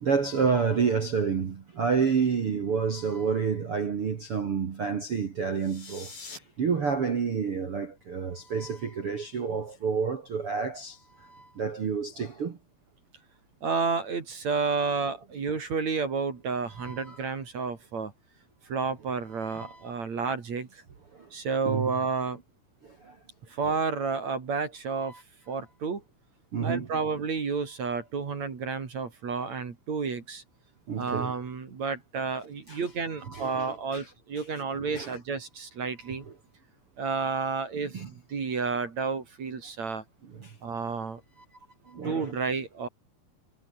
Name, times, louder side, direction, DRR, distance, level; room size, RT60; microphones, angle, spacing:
voice 1, 0.0-6.1 6.6-12.6 16.8-17.2 19.4-19.8 21.2-21.3 21.6-21.9 23.0-23.1 25.0-25.2 26.5-26.9 30.9-31.3 32.7-32.8 33.2-34.0 34.4-34.5 34.8-35.2 37.8-38.1 40.3-40.5 41.9-42.3, right 6 dB, 70° right, 1.3 m, -29 dB
sound 1, 5.5-6.4, left 4 dB, 40° left, 9.5 m, -44 dB
voice 2, 13.6-18.1 18.7-20.8 21.3-22.4 23.5-25.1 25.5-26.0 26.6-30.4 31.0-36.3 37.0-40.0 40.6-41.2 42.0-42.9, right 5 dB, 40° right, 3.6 m, -31 dB
omnidirectional pair, 6.0 m